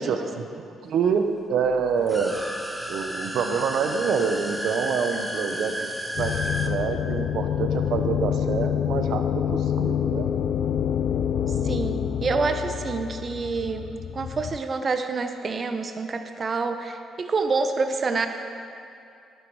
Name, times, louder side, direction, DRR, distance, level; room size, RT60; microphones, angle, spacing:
voice 1, 0.0-2.4 2.9-5.7 6.2-6.4 6.6-10.3, right 6 dB, 75° right, 6 dB, 0.9 m, -26 dB
sound 1, 2.0-6.7, equal, 5° right, 1.0 m, -32 dB
sound 2, 6.2-14.6, left 9 dB, 70° left, 0.3 m, -27 dB
voice 2, 11.6-13.9 14.1-18.3, right 4 dB, 40° right, 7 dB, 0.8 m, -27 dB
12.0 x 9.2 x 4.8 m, 2.6 s
cardioid pair, 90°, 0 cm